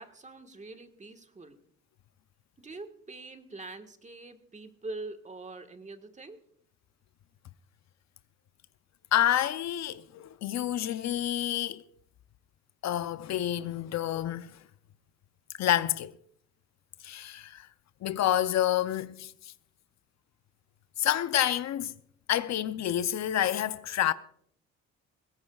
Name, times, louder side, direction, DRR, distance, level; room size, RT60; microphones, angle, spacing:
voice 1, 0.0-1.6 2.6-6.4, right 3 dB, 25° right, 1.5 m, -44 dB
voice 2, 9.1-11.8 12.8-14.5 15.6-16.1 17.0-17.7 18.0-19.5 21.0-21.9 22.3-24.1, left 12 dB, 65° left, 0.6 m, -28 dB
20.5 x 17.0 x 2.4 m
cardioid pair, 90°, 30 cm